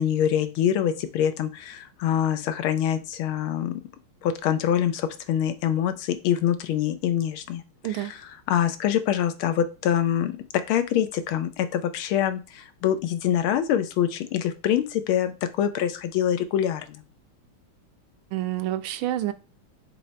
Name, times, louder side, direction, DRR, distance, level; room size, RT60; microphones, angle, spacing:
voice 1, 0.0-3.8 4.2-7.6 7.9-8.2 8.5-17.0, left 10 dB, 85° left, 10 dB, 1.5 m, -25 dB
voice 2, 18.3-19.3, right 13 dB, 85° right, 10 dB, 1.5 m, -28 dB
6.4 x 3.4 x 4.4 m, 0.32 s
omnidirectional pair, 2.3 m